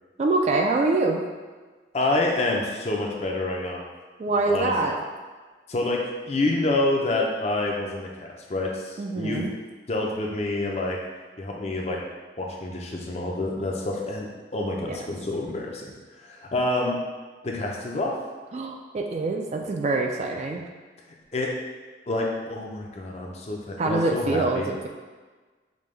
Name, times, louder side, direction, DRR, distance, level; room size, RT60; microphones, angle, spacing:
voice 1, 0.2-1.2 4.2-5.0 9.0-9.5 14.9-15.0 18.5-20.6 23.8-24.9, right 3 dB, 40° right, 2 dB, 0.3 m, -25 dB
voice 2, 1.9-3.8 4.5-4.7 5.7-6.0 6.3-9.5 9.9-11.0 11.4-12.0 12.4-15.9 16.2-17.0 17.4-18.1 21.3-21.5 22.1-24.7, left 2 dB, 35° left, -1 dB, 0.5 m, -27 dB
5.2 x 2.2 x 3.2 m, 1.4 s
head